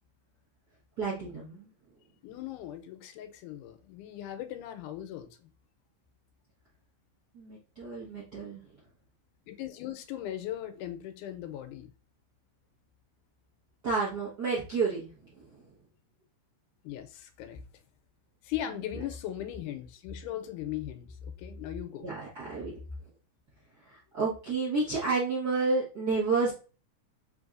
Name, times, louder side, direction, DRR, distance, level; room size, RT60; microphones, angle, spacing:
voice 1, 1.0-1.7 7.3-8.6 13.8-15.6 22.0-22.7 23.8-26.5, right 4 dB, 55° right, 1.1 m, -30 dB
voice 2, 2.2-5.5 9.5-11.9 16.8-17.6 18.4-22.1, left 11 dB, 85° left, 2.1 m, -38 dB
4.6 x 3.4 x 2.4 m
omnidirectional pair, 3.5 m